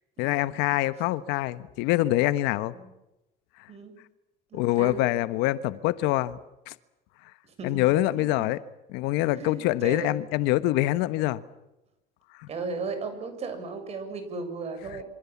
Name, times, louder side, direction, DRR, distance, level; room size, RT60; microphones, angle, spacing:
voice 1, 0.2-2.7 4.5-6.4 6.7-6.8 7.6-8.6 8.9-11.4 12.4-12.5, left 16 dB, 85° left, 1.3 m, -25 dB
voice 2, 4.5-5.0 7.6-7.8 9.4-10.1 12.5-15.0, right 4 dB, 40° right, 6.7 m, -35 dB
26.5 x 26.0 x 7.3 m
cardioid pair, 135°, 17 cm